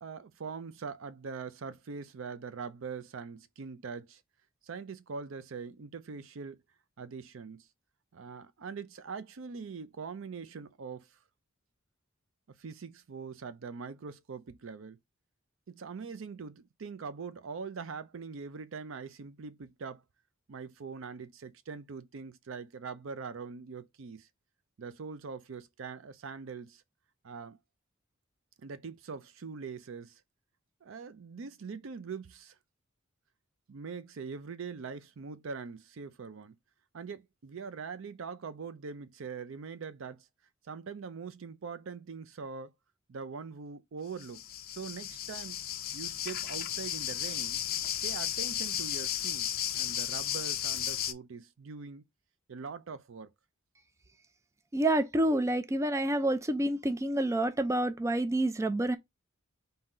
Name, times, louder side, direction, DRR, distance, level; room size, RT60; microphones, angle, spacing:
voice 1, 0.0-4.2 4.6-6.6 7.0-7.7 8.1-11.1 12.6-15.0 15.7-20.0 20.5-24.3 24.8-26.8 27.2-27.6 28.6-30.2 30.8-32.5 33.7-36.6 36.9-40.3 40.6-42.7 43.1-44.4 44.7-45.6 45.9-47.6 48.0-52.0 52.5-53.3, right 5 dB, 70° right, 0.5 m, -42 dB
sound 1, 44.2-51.1, left 11 dB, 50° left, 0.5 m, -34 dB
voice 2, 54.7-59.0, right 1 dB, 15° right, 0.4 m, -28 dB
3.8 x 2.7 x 4.2 m
head